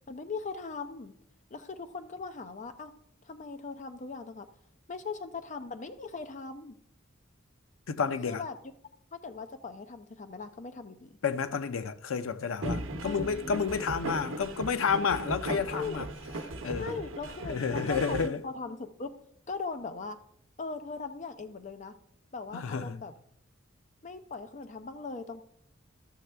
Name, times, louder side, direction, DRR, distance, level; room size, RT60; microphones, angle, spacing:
voice 1, 0.1-1.1 1.5-2.9 3.2-4.5 4.9-6.8 8.3-8.6 9.1-11.1 13.0-13.5 15.7-16.1 16.8-19.1 19.5-20.2 20.6-21.9 22.3-23.1 24.0-25.4, left 4 dB, 40° left, 0.6 m, -39 dB
voice 2, 7.9-8.4 11.2-16.1 16.6-16.9 17.4-18.4 22.5-23.0, left 6 dB, 85° left, 0.5 m, -30 dB
sound 1, 12.6-18.3, right 2 dB, 75° right, 0.8 m, -37 dB
13.0 x 6.5 x 3.3 m
head